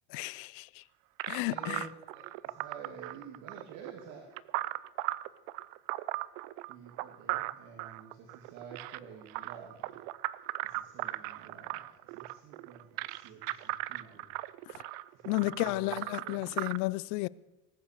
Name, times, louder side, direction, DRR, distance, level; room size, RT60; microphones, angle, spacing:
voice 1, 0.1-0.8 1.3-1.8 14.7-14.8 15.2-17.3, left 22 dB, 75° left, 0.5 m, -33 dB
sound 1, 1.2-16.8, right 18 dB, 80° right, 0.6 m, -38 dB
voice 2, 1.4-1.9 2.1-4.2 6.7-10.0 10.6-14.3 15.1-16.6, right 6 dB, 60° right, 2.4 m, -50 dB
19.5 x 9.1 x 6.6 m
cardioid pair, 155°, 30 cm